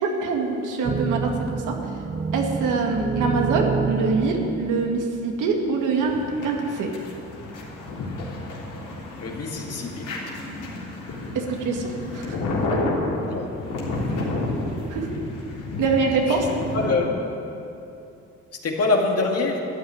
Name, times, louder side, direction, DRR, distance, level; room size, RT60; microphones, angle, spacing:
voice 1, 0.0-1.8 2.3-6.2 6.4-7.0 11.3-11.9 12.1-12.4 14.9-15.1 15.8-16.5, right 4 dB, 85° right, 1 dB, 2.2 m, -24 dB
sound 1, 0.8-5.6 6.3-6.4 7.7-8.2 8.8-9.3, right 4 dB, 25° right, 0.5 m, -28 dB
sound 2, 5.9-16.9, left 2 dB, 85° left, 3.5 m, -31 dB
voice 2, 9.2-10.1 13.2-13.5 16.7-17.2 18.6-19.6, left 3 dB, 55° left, 1 dB, 2.4 m, -24 dB
13.5 x 9.6 x 9.4 m, 2.8 s
cardioid pair, 90°, 30 cm